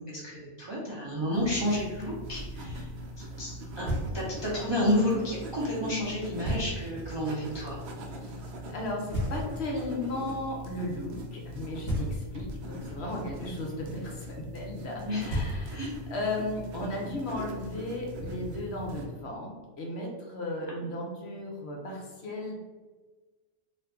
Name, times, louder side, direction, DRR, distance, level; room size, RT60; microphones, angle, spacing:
voice 1, 0.1-2.9 3.4-3.9 4.1-7.8 12.7-12.8 15.1-15.2 15.7-15.9, left 1 dB, 45° right, -6 dB, 0.3 m, -30 dB
sound 1, 1.3-19.1, equal, 65° right, 0.7 m, -41 dB
Knock, 3.8-4.5 6.4-7.1 9.1-9.9 11.8-12.6 14.9-15.0 15.3-16.1, equal, 35° left, 1.2 m, -33 dB
voice 2, 8.1-22.6, left 1 dB, 60° left, 0 dB, 0.8 m, -36 dB
2.6 x 2.5 x 3.4 m, 1.3 s
omnidirectional pair, 1.4 m